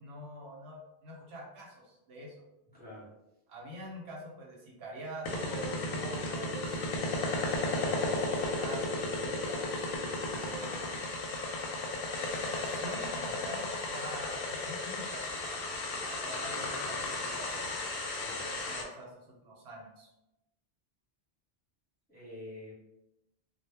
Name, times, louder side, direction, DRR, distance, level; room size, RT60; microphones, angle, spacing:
voice 1, 0.0-2.4 3.5-6.9 7.6-9.7 10.2-11.0 12.2-15.6 16.1-17.6 18.2-19.1 19.4-20.1, right 1 dB, 75° right, -2 dB, 0.9 m, -45 dB
voice 2, 2.7-3.1 18.1-18.4 22.1-22.7, left 1 dB, 10° left, -8 dB, 0.8 m, -47 dB
sound 1, 5.3-18.8, left 2 dB, 65° left, 0.7 m, -34 dB
2.1 x 2.0 x 3.2 m, 0.92 s
omnidirectional pair, 1.1 m